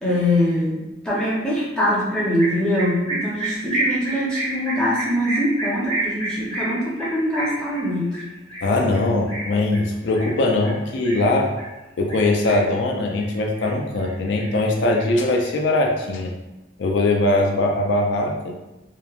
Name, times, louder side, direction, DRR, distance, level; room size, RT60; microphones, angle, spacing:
voice 1, 0.0-8.1, left 1 dB, 5° left, -7 dB, 0.6 m, -23 dB
sound 1, 2.4-11.7 12.1-12.8 13.2-14.1 14.4-15.7, right 2 dB, 30° left, 1.0 m, -30 dB
voice 2, 8.6-11.5 12.0-16.3 16.8-18.6, left 2 dB, 70° left, 1 dB, 0.4 m, -21 dB
2.8 x 2.1 x 2.3 m, 1.0 s
head